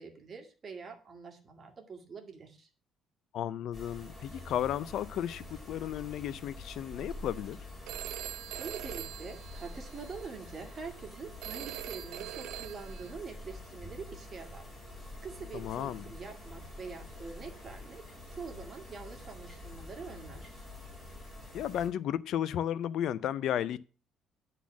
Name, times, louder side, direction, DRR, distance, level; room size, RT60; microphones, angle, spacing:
voice 1, 0.0-2.7 8.6-14.7 15.2-18.0 18.3-20.6, right 5 dB, 30° right, 1.9 m, -45 dB
voice 2, 3.3-7.6 15.5-16.1 21.5-23.8, left 10 dB, 60° left, 0.4 m, -34 dB
sound 1, 3.7-21.9, left 1 dB, 10° left, 4.4 m, -47 dB
Telephone, 7.9-10.2 11.4-13.1, right 15 dB, 75° right, 0.3 m, -42 dB
10.0 x 4.1 x 7.2 m
cardioid pair, 155°, 0 cm